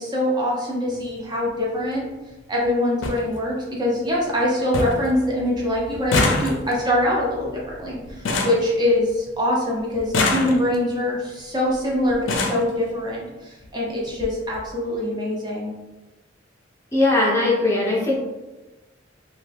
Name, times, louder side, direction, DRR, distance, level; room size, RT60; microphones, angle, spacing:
voice 1, 0.0-2.1 2.5-15.7, left 1 dB, 25° right, -4 dB, 0.7 m, -24 dB
sound 1, 0.9-1.1 2.3-2.4 2.6-2.7 3.0-3.2 3.7-4.1 4.4-4.5 4.7-5.1 5.4-9.4 9.9-10.9 11.7-11.8 12.1-12.7 13.6-13.7 14.1-14.3 14.5-14.7, left 2 dB, 70° left, 0.5 m, -25 dB
voice 2, 16.9-18.2, left 2 dB, 15° left, -5 dB, 0.7 m, -19 dB
2.7 x 2.2 x 3.4 m, 1.1 s
head